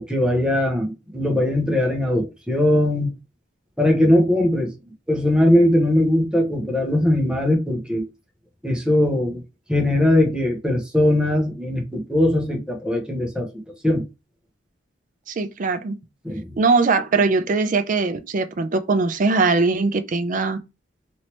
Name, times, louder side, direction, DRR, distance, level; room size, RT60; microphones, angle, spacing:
voice 1, 0.0-3.1 3.8-4.7 5.1-8.0 8.6-9.4 9.7-13.5 13.8-14.0 16.2-16.4, left 1 dB, 5° right, 0.8 m, -20 dB
voice 2, 15.3-16.0 16.6-20.6, right 4 dB, 45° right, 0.4 m, -21 dB
3.1 x 2.9 x 2.9 m
head